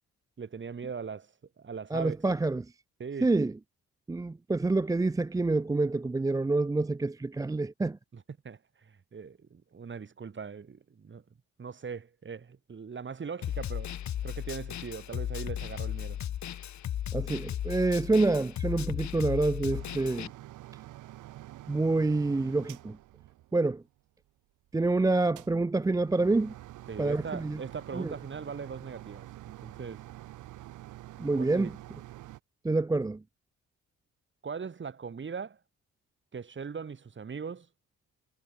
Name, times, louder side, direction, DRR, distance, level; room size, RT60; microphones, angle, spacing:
voice 1, 0.4-1.3 1.6-2.2 3.0-3.3 8.1-11.2 11.6-13.9 14.2-16.2 26.9-30.0 31.4-31.7 34.4-35.6 36.3-37.7, right 6 dB, 40° right, 7.0 m, -40 dB
voice 2, 1.9-2.7 3.2-3.5 4.1-8.0 17.1-20.3 21.7-23.0 23.5-23.8 24.7-26.5 27.0-27.6 27.9-28.1 31.2-31.7 32.6-33.2, right 3 dB, 10° right, 0.5 m, -27 dB
Snare drum, 13.4-20.3, left 10 dB, 65° left, 3.9 m, -35 dB
sound 1, 19.7-24.0 25.3-32.4, right 15 dB, 85° right, 2.2 m, -47 dB
cardioid pair, 90°, 30 cm